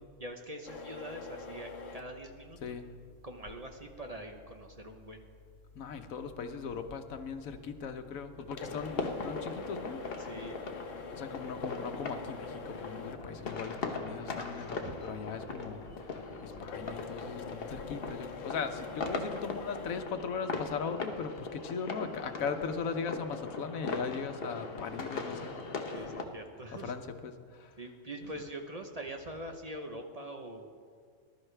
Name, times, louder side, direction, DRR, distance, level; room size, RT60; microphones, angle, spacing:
voice 1, 0.2-2.8 3.2-5.2 10.2-10.6 14.8-14.9 25.9-26.9 27.8-30.7, right 1 dB, 35° right, 3 dB, 0.8 m, -43 dB
sound 1, 0.7-20.1, left 4 dB, 75° left, 1.2 m, -47 dB
voice 2, 5.7-10.0 11.1-26.0 26.8-27.8, left 5 dB, 90° left, 8 dB, 1.2 m, -39 dB
sound 2, 8.6-26.2, left 4 dB, 50° left, 1.1 m, -40 dB
19.5 x 12.0 x 3.3 m, 2.1 s
omnidirectional pair, 1.4 m